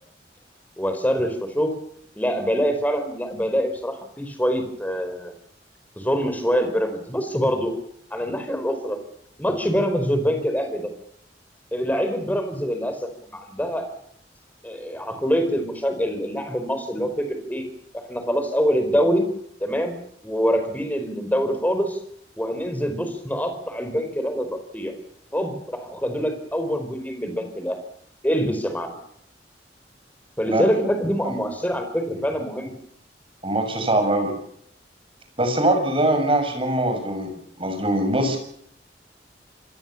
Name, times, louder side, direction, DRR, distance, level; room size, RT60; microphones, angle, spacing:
voice 1, 0.8-1.7 2.2-5.3 6.0-7.7 8.1-9.0 9.4-10.9 11.7-13.9 14.6-17.6 18.1-19.3 19.6-19.9 20.2-22.0 22.4-24.5 24.7-24.9 25.3-27.8 28.2-28.9 30.4-32.7, equal, 10° left, 7 dB, 4.6 m, -25 dB
voice 2, 33.4-34.3 35.4-38.4, right 1 dB, 30° right, 5 dB, 6.7 m, -22 dB
27.0 x 21.0 x 7.3 m, 0.69 s
head